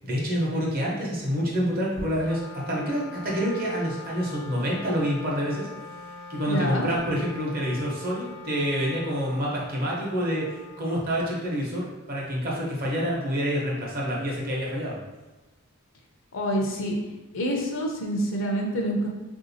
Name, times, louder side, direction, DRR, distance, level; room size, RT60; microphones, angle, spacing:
voice 1, 0.0-2.4 2.7-5.7 6.3-10.5 10.8-15.0, equal, 45° right, -4 dB, 0.9 m, -27 dB
Wind instrument woodwind instrument, 2.2-11.7, left 2 dB, 5° left, 0.4 m, -43 dB
voice 2, 6.5-6.9 16.3-17.0 17.3-19.1, equal, 65° left, 0 dB, 0.6 m, -27 dB
3.4 x 2.7 x 2.7 m, 1.1 s
head